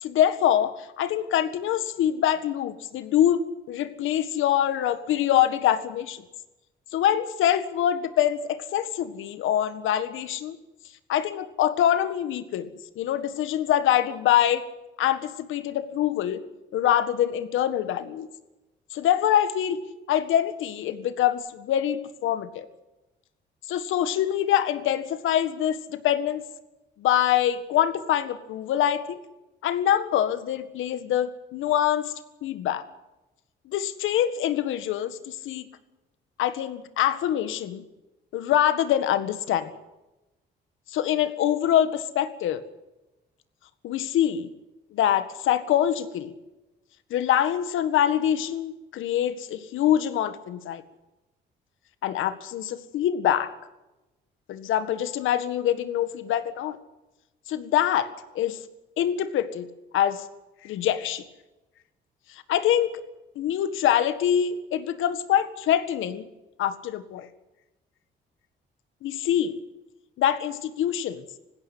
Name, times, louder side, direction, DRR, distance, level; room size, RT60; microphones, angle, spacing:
voice 1, 0.0-6.2 6.9-10.6 11.1-14.6 15.0-16.4 16.7-18.3 18.9-19.8 20.1-22.7 23.7-26.4 27.0-29.2 29.6-32.1 32.4-32.8 33.7-35.7 36.4-37.8 38.3-39.7 40.9-42.6 43.8-44.5 44.9-46.3 47.1-50.8 52.0-53.5 54.5-56.8 57.5-58.1 58.4-58.6 59.0-59.7 59.9-60.3 60.6-61.2 62.3-63.0 63.4-66.3 66.6-67.3 69.0-69.6 70.2-71.2, left 10 dB, 85° left, 12 dB, 1.8 m, -24 dB
19.5 x 16.0 x 9.7 m, 1.0 s
cardioid pair, 90°, 20 cm